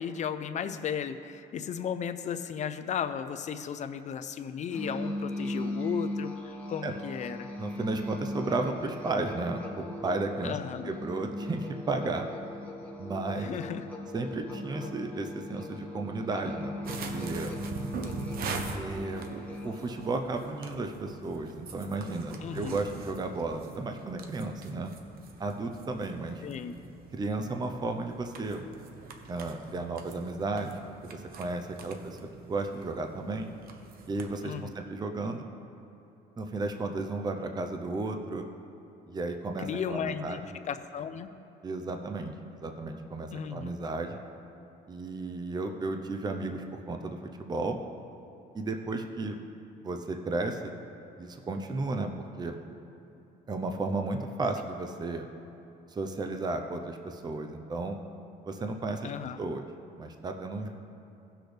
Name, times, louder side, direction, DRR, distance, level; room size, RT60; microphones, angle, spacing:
voice 1, 0.0-7.5 10.4-10.9 13.4-13.8 22.4-22.8 26.4-26.7 34.4-34.7 39.6-40.4 40.7-41.3 43.3-43.7 59.0-59.4, left 7 dB, 45° left, 9 dB, 0.6 m, -35 dB
Musical instrument, 4.7-20.3, left 1 dB, 10° left, 1.7 m, -38 dB
voice 2, 7.6-10.6 10.8-12.3 13.0-13.5 14.1-17.5 18.7-19.2 19.6-25.0 25.4-26.4 27.1-28.6 29.3-32.2 32.5-33.5 34.1-35.4 36.4-38.4 39.1-40.4 41.6-42.3 42.6-44.2 44.9-47.8 48.5-49.4 49.8-50.7 51.2-52.6 53.5-55.3 55.9-58.0 58.4-59.1 59.4-59.6 60.0-60.7, right 3 dB, 25° right, 4 dB, 0.7 m, -33 dB
sound 1, 16.8-34.4, right 4 dB, 60° right, 1.0 m, -43 dB
17.5 x 6.2 x 3.4 m, 2.9 s
cardioid pair, 110°, 17 cm